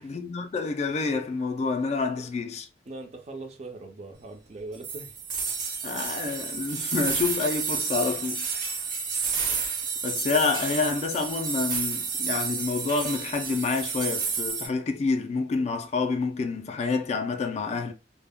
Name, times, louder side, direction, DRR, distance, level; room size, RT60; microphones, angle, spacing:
voice 1, 0.0-2.7 5.8-8.4 10.0-17.9, left 4 dB, 40° left, 0.3 m, -28 dB
voice 2, 2.9-5.1, right 2 dB, 40° right, 0.5 m, -41 dB
sound 1, 4.8-14.7, right 5 dB, 55° right, 0.9 m, -30 dB
2.2 x 2.0 x 3.4 m
head